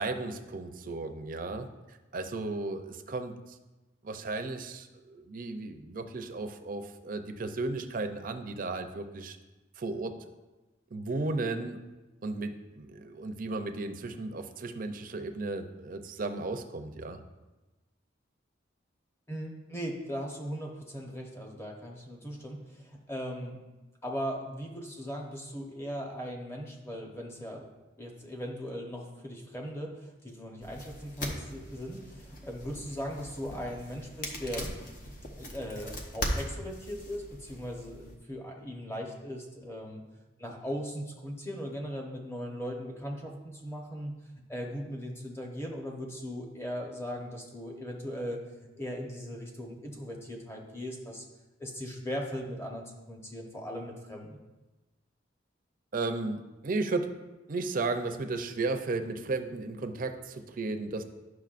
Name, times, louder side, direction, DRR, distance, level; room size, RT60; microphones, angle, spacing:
voice 1, 0.0-3.6 4.0-9.4 9.8-10.2 10.9-11.8 12.2-17.2 55.9-57.1 57.5-61.0, right 3 dB, 45° right, 7 dB, 0.5 m, -34 dB
voice 2, 19.3-23.6 24.0-27.7 28.0-34.7 35.4-40.0 40.4-44.1 44.5-51.2 51.6-54.4, equal, 15° left, 0 dB, 0.9 m, -38 dB
sound 1, 30.6-38.2, equal, 45° left, 0.9 m, -40 dB
10.5 x 6.0 x 2.5 m, 1.1 s
head